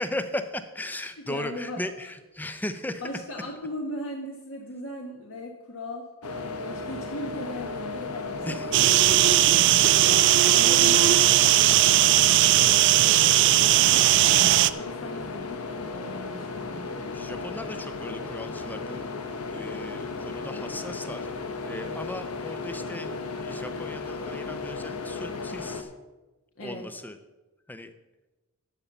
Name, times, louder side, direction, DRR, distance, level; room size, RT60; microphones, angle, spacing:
voice 1, 0.0-3.0 8.4-8.7 17.1-19.0 19.5-21.3 21.6-25.9 26.6-27.2 27.7-27.9, left 1 dB, 10° left, 10 dB, 0.5 m, -36 dB
voice 2, 1.2-2.1 3.0-10.3 10.5-14.3 14.8-16.9 26.6-26.9, left 1 dB, 60° left, 0 dB, 1.2 m, -39 dB
sound 1, 6.2-25.8, left 3 dB, 90° left, 1.1 m, -35 dB
sound 2, 8.7-14.7, right 14 dB, 55° right, 0.3 m, -18 dB
12.0 x 5.5 x 7.1 m, 1.1 s
head